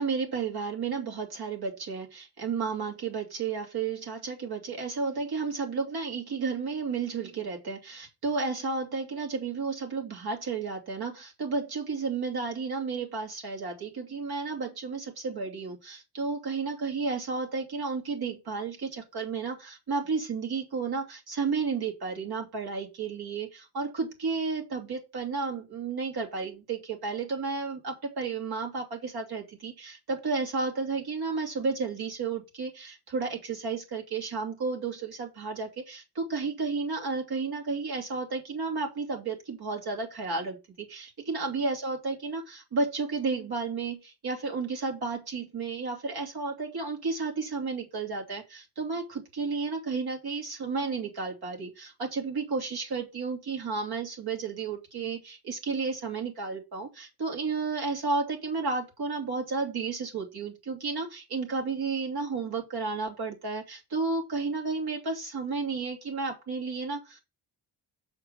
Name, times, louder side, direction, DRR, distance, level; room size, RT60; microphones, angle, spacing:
voice 1, 0.0-67.2, right 4 dB, 60° right, 2.9 m, -32 dB
7.1 x 4.4 x 5.7 m
cardioid pair, 125°, 42 cm